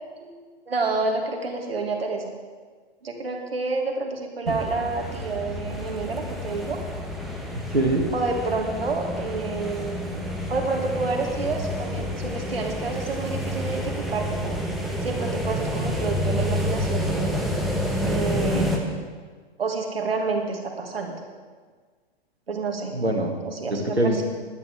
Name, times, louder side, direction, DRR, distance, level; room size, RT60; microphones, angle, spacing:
voice 1, 0.7-2.3 3.0-6.8 8.1-10.2 10.5-14.5 15.0-17.4 18.0-19.0 19.6-21.2 22.5-22.9 23.4-24.2, right 3 dB, 65° right, 2 dB, 2.2 m, -29 dB
sound 1, 4.5-18.8, equal, ahead, 1.2 m, -29 dB
voice 2, 7.7-8.0 18.5-18.7 22.9-23.4 23.7-24.2, right 1 dB, 85° right, 3 dB, 2.2 m, -23 dB
18.0 x 11.0 x 3.6 m, 1.5 s
figure-of-eight pair, 115°, 32 cm